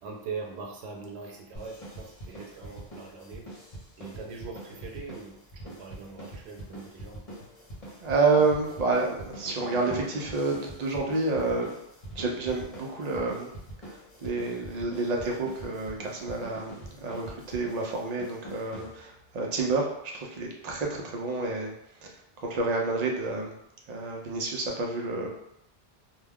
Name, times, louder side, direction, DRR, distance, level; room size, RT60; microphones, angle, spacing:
voice 1, 0.0-3.5 4.0-7.2, right 4 dB, 85° right, 1 dB, 0.9 m, -41 dB
punk rock groove, 1.5-19.3, right 1 dB, 40° left, 0.9 m, -44 dB
voice 2, 8.0-11.7 12.2-13.5 13.9-21.7 22.0-22.1 22.4-23.5 23.9-25.3, right 3 dB, 50° right, 0 dB, 0.6 m, -29 dB
2.3 x 2.2 x 3.4 m, 0.80 s
omnidirectional pair, 1.0 m